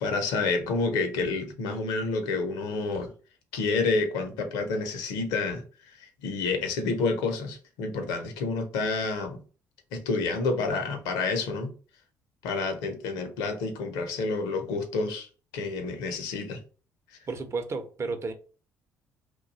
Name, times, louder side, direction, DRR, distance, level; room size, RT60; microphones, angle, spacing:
voice 1, 0.0-3.1 3.5-5.6 6.0-9.4 9.9-11.7 12.4-15.3 15.5-16.6, left 3 dB, 75° left, 0.8 m, -29 dB
voice 2, 17.3-18.3, right 4 dB, 40° right, 0.7 m, -32 dB
2.6 x 2.3 x 3.9 m
hypercardioid pair, 60°, 7 cm